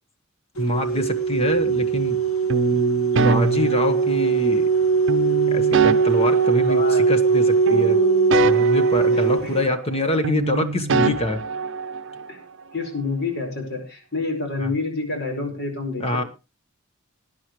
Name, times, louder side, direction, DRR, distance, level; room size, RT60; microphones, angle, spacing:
sound 1, 0.6-9.6, right 5 dB, 85° left, 1.8 m, -20 dB
voice 1, 0.6-2.2 2.7-2.8 3.1-4.7 5.5-8.0 8.4-11.4 14.6-14.7 16.0-16.2, left 1 dB, 30° left, 9 dB, 1.3 m, -25 dB
sound 2, 2.5-4.5 5.1-7.4 7.7-10.0 10.2-12.3, right 4 dB, 65° right, 0.7 m, -25 dB
voice 2, 6.6-7.0 12.3-12.4 12.7-16.3, left 3 dB, 55° left, 3 dB, 4.9 m, -28 dB
20.0 x 10.0 x 3.1 m, 0.29 s
head